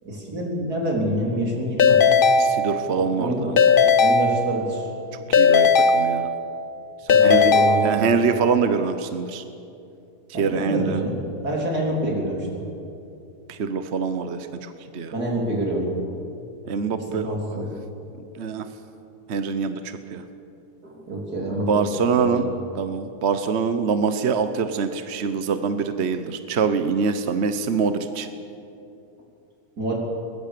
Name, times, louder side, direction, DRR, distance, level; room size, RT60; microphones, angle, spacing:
voice 1, 0.0-2.0 3.0-3.5 4.0-4.9 7.1-8.1 10.3-12.6 15.1-15.9 17.1-17.6 20.8-21.9 22.2-22.5 29.8-30.0, right 1 dB, 75° right, -1 dB, 4.4 m, -27 dB
Keyboard (musical) / Ringtone, 1.8-3.1 3.6-4.9 5.3-6.7 7.1-8.4, left 5 dB, 45° left, 0.7 m, -18 dB
voice 2, 2.4-3.6 5.3-6.3 7.1-7.5 7.8-9.4 10.3-11.0 13.5-15.1 16.6-17.4 18.3-18.7 19.3-20.2 21.7-22.5 22.8-28.3, right 5 dB, 50° right, 9 dB, 1.1 m, -24 dB
22.5 x 20.5 x 6.8 m, 2.7 s
omnidirectional pair, 1.7 m